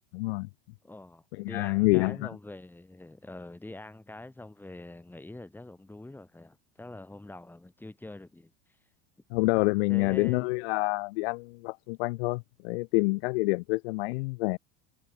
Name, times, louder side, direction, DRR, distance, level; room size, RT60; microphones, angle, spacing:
voice 1, 0.1-0.5 1.3-2.3 9.3-14.6, left 26 dB, 70° left, 1.8 m, -27 dB
voice 2, 0.8-8.5 9.9-10.5, left 2 dB, 5° left, 5.6 m, -45 dB
supercardioid pair, 130°, 32 cm